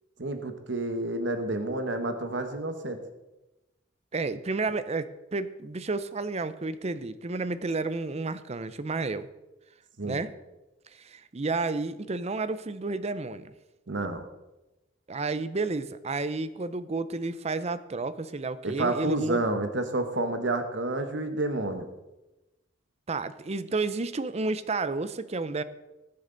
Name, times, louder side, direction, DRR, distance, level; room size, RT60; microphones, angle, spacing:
voice 1, 0.2-3.0 10.0-10.2 13.9-14.2 18.6-21.9, right 2 dB, 65° right, 7 dB, 1.2 m, -29 dB
voice 2, 4.1-9.3 10.0-10.3 10.9-13.5 15.1-19.4 23.1-25.6, right 3 dB, 35° right, 14 dB, 0.6 m, -31 dB
19.5 x 7.7 x 3.9 m, 1.0 s
head